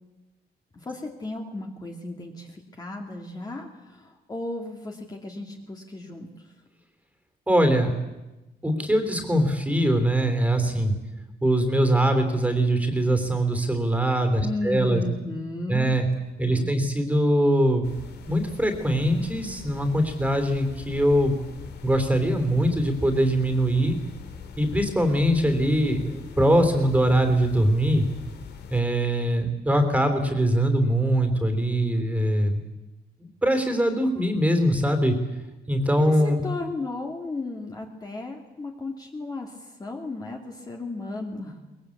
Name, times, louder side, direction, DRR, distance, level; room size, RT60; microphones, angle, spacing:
voice 1, 0.8-6.3 14.4-16.0 16.4-16.9 35.9-41.6, left 2 dB, 20° left, 1 dB, 2.4 m, -34 dB
voice 2, 7.5-7.9 8.6-10.9 11.4-15.0 15.7-16.1 16.4-17.8 18.3-21.3 21.8-23.9 24.6-28.0 28.7-32.6 33.2-35.2 35.7-36.4, right 1 dB, 10° right, 6 dB, 3.2 m, -22 dB
sound 1, 17.8-28.8, left 6 dB, 75° left, 2.8 m, -42 dB
23.0 x 21.5 x 8.6 m, 1.0 s
wide cardioid pair, 160°, 18 cm